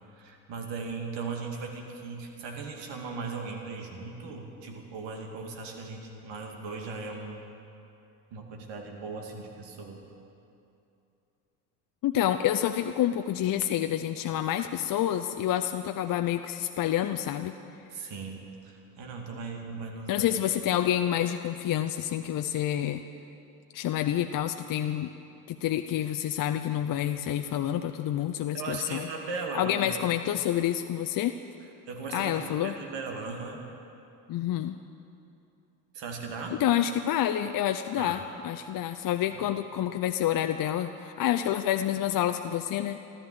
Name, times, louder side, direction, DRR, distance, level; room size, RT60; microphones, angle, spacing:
voice 1, 0.1-7.4 8.3-10.0 17.9-20.3 28.5-30.0 31.9-33.6 35.9-36.6 38.0-38.2 39.3-39.4, right 4 dB, 60° right, 2 dB, 2.6 m, -38 dB
voice 2, 12.0-17.5 20.1-23.0 23.7-25.1 25.5-29.1 29.5-31.3 32.1-32.7 34.3-34.8 36.6-43.0, left 11 dB, 45° left, 7 dB, 0.7 m, -28 dB
14.0 x 13.0 x 7.7 m, 2.7 s
hypercardioid pair, 65°, 48 cm